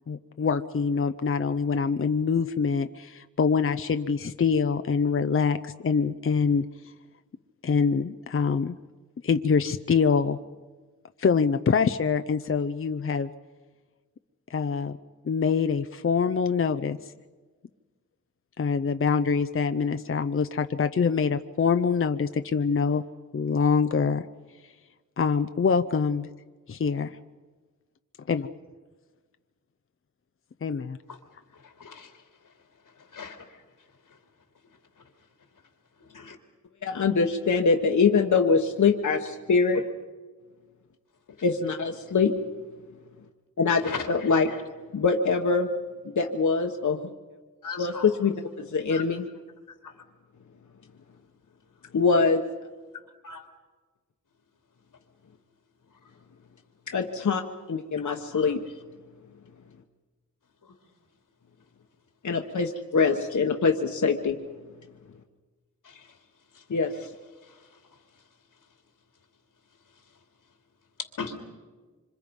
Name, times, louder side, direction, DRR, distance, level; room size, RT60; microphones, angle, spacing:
voice 1, 0.1-6.9 7.6-8.8 9.2-10.4 11.2-13.3 14.5-15.0 15.2-17.1 18.6-23.0 23.3-24.3 25.2-26.3 26.7-27.2 28.3-28.5 30.6-31.0, left 5 dB, 40° left, 9 dB, 0.7 m, -25 dB
voice 2, 31.8-32.1 33.1-33.4 36.1-36.4 43.8-44.0 44.5-44.6 47.6-48.1 48.9-49.0 49.8-49.9 53.2-53.4 58.0-58.5 65.8-66.0 71.2-71.4, left 5 dB, 85° left, 4 dB, 2.9 m, -37 dB
voice 3, 36.8-39.8 41.4-42.3 43.6-43.8 44.1-44.5 44.9-45.7 46.2-47.0 47.8-49.2 51.9-52.4 56.9-57.4 57.7-58.6 62.2-64.4 66.7-66.9, left 4 dB, 65° left, 3 dB, 1.3 m, -23 dB
26.0 x 26.0 x 5.4 m, 1.4 s
wide cardioid pair, 95°, 32 cm